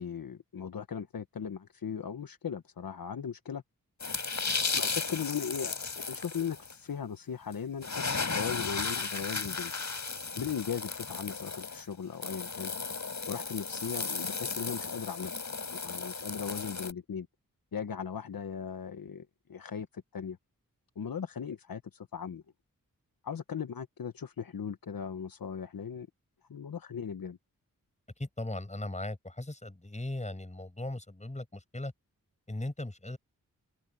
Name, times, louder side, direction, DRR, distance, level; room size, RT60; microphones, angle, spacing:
voice 1, 0.0-3.6 4.7-8.0 8.3-9.7 10.4-12.7 13.3-15.3 15.7-17.3 17.7-20.4 20.9-22.4 23.2-26.1 26.5-27.4, left 7 dB, 80° left, 1.3 m, -38 dB
sound 1, 4.0-6.7 7.5-7.6 7.8-16.9, left 4 dB, 55° left, 4.5 m, -35 dB
voice 2, 28.2-31.9 32.5-33.2, left 1 dB, 20° left, 6.2 m, -38 dB
open air
wide cardioid pair, 70°, 34 cm